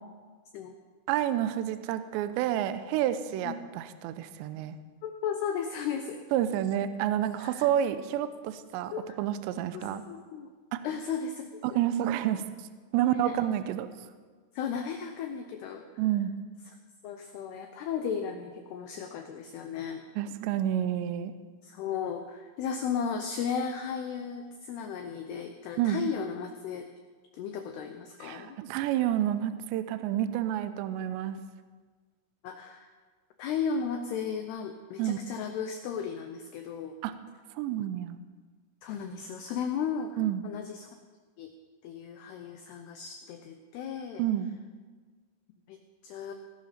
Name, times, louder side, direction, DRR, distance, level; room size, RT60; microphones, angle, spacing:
voice 1, 1.1-4.8 6.3-8.9 9.2-10.0 10.7-10.8 11.6-12.4 12.9-13.9 16.0-16.3 20.2-21.3 25.8-26.0 28.2-31.4 35.0-35.2 37.0-37.1 37.6-38.2 40.2-40.4 44.2-44.5, right 11 dB, 90° right, 11 dB, 2.6 m, -29 dB
voice 2, 5.0-6.2 7.4-7.7 8.9-9.2 9.7-10.5 10.8-11.8 13.1-13.4 14.6-15.8 17.0-20.0 21.6-26.9 27.3-28.6 32.4-32.9 33.4-36.9 38.8-40.1 40.4-40.9 41.4-41.5 41.8-44.2 45.7-45.8 46.0-46.3, left 7 dB, 90° left, 5 dB, 2.3 m, -35 dB
19.0 x 11.5 x 4.3 m, 1.5 s
omnidirectional pair, 5.7 m